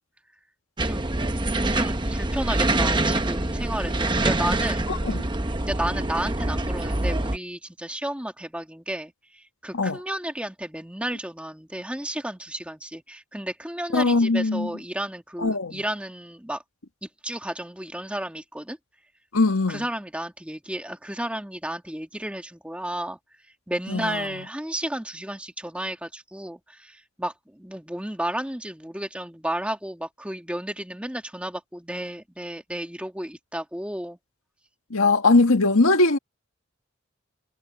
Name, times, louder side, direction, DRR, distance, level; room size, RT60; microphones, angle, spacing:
sound 1, 0.8-7.4, right 2 dB, 20° right, 0.9 m, -25 dB
voice 1, 1.7-5.0 5.7-16.6 17.0-18.8 19.7-23.2 23.7-34.2, right 1 dB, 5° right, 2.0 m, -32 dB
voice 2, 4.9-5.3 9.7-10.0 13.9-14.7 15.4-15.8 19.3-19.9 23.9-24.2 34.9-36.2, left 3 dB, 90° left, 1.8 m, -20 dB
head